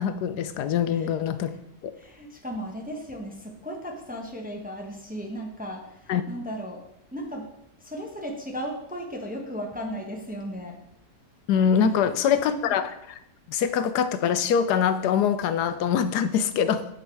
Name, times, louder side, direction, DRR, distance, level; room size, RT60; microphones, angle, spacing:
voice 1, 0.0-1.5 1.8-1.9 6.1-6.2 11.5-12.9 13.5-16.9, left 7 dB, 75° left, 11 dB, 1.2 m, -24 dB
voice 2, 2.0-6.8 7.1-7.5 7.8-10.8 12.1-12.8, equal, 5° right, 1 dB, 1.0 m, -36 dB
9.4 x 6.3 x 4.7 m, 0.81 s
omnidirectional pair, 1.8 m